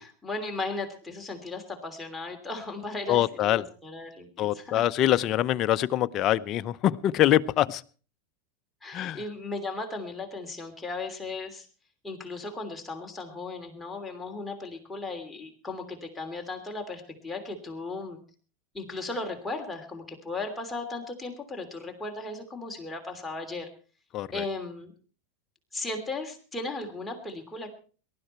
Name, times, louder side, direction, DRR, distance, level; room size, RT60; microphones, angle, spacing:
voice 1, 0.0-4.8 8.8-11.7 12.0-18.2 18.7-23.7 24.3-24.9 25.7-27.7, left 3 dB, 10° left, 2 dB, 3.1 m, -36 dB
voice 2, 3.1-3.6 4.4-7.8 8.9-9.2 24.1-24.3, left 12 dB, 40° left, 12 dB, 0.7 m, -24 dB
18.5 x 12.5 x 4.5 m, 0.39 s
hypercardioid pair, 115°, 0 cm